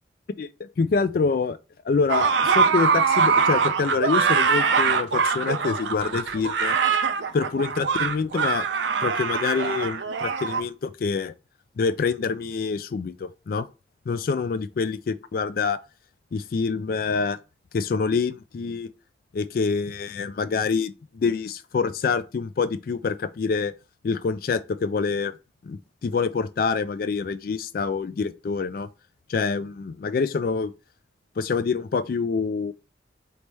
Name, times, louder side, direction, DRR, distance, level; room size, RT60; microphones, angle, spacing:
voice 1, 0.8-1.6 1.8-6.8 7.3-8.7 9.0-11.3 11.8-13.7 14.1-15.8 16.3-17.4 17.7-18.9 19.3-23.7 24.0-25.3 25.6-28.9 29.3-30.7 31.4-32.7, left 5 dB, 55° left, 0.3 m, -26 dB
sound 1, 2.1-10.6, right 5 dB, 80° right, 0.6 m, -23 dB
4.1 x 3.3 x 3.3 m
head